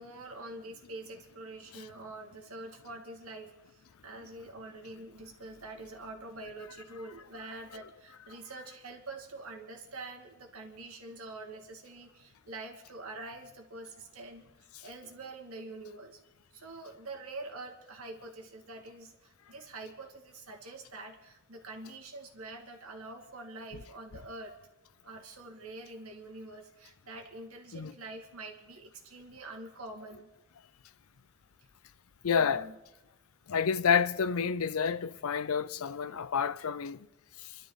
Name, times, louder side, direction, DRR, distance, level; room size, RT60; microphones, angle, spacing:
voice 1, 0.0-16.2 16.5-24.6 25.0-30.3 32.3-32.8, right 2 dB, 90° right, 2.4 m, -46 dB
voice 2, 32.2-32.7 33.5-37.0, left 6 dB, 80° left, 0.6 m, -29 dB
28.0 x 12.5 x 4.1 m
head